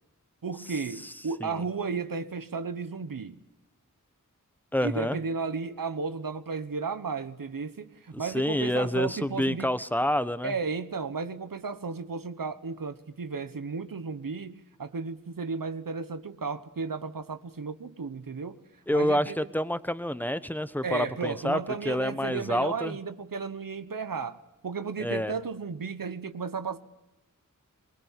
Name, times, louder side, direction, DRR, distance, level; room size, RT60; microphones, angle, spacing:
voice 1, 0.4-3.4 4.8-9.7 10.4-18.6 18.9-19.4 20.8-26.8, right 5 dB, 90° right, 1.2 m, -34 dB
voice 2, 4.7-5.2 8.2-10.5 18.9-21.6 21.8-23.0 25.0-25.3, left 1 dB, 5° left, 1.1 m, -28 dB
23.5 x 21.0 x 7.4 m
wide cardioid pair, 65°, 33 cm